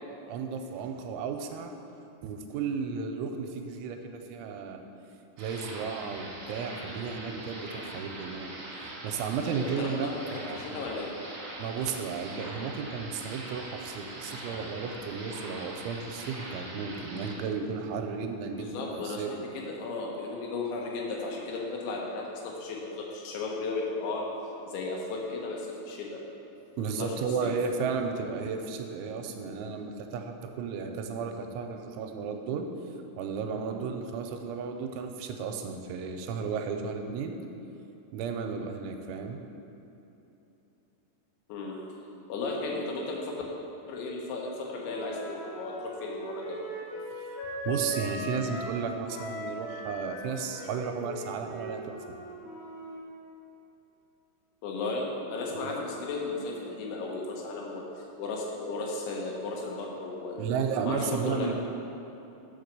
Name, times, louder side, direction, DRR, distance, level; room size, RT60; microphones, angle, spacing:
voice 1, 0.3-1.7 2.2-4.8 5.4-8.5 9.0-10.8 11.6-19.3 26.8-32.7 33.2-37.4 38.1-39.4 47.2-47.4 47.7-51.9 55.6-55.7 60.4-61.5, right 5 dB, 90° right, 4 dB, 3.0 m, -34 dB
sound 1, 5.4-17.3, right 2 dB, 55° right, 1.8 m, -42 dB
voice 2, 9.4-11.1 18.5-24.3 24.7-26.2 26.8-27.1 27.4-27.5 41.5-41.8 42.3-43.4 43.9-45.7 46.0-46.6 54.6-60.4 60.8-61.5, left 3 dB, 80° left, -2 dB, 3.4 m, -35 dB
Wind instrument woodwind instrument, 44.8-48.8 49.1-53.0, equal, 60° left, 2.3 m, -39 dB
7.1 x 6.0 x 6.6 m, 3.0 s
omnidirectional pair, 5.4 m